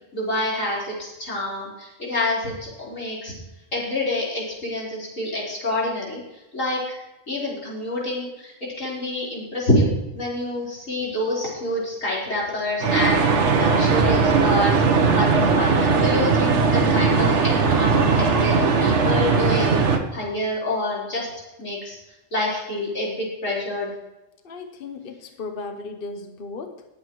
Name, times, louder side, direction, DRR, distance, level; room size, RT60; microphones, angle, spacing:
voice 1, 0.1-3.3 3.7-6.2 6.5-7.0 7.3-9.9 10.1-19.8 20.1-21.3 21.6-22.0 22.3-23.9, left 1 dB, 85° left, -6 dB, 4.8 m, -27 dB
sound 1, 12.8-20.0, right 4 dB, 65° right, 1.4 m, -19 dB
voice 2, 24.4-26.9, left 3 dB, 50° left, 6 dB, 1.0 m, -35 dB
20.0 x 8.6 x 3.1 m, 1.0 s
omnidirectional pair, 1.3 m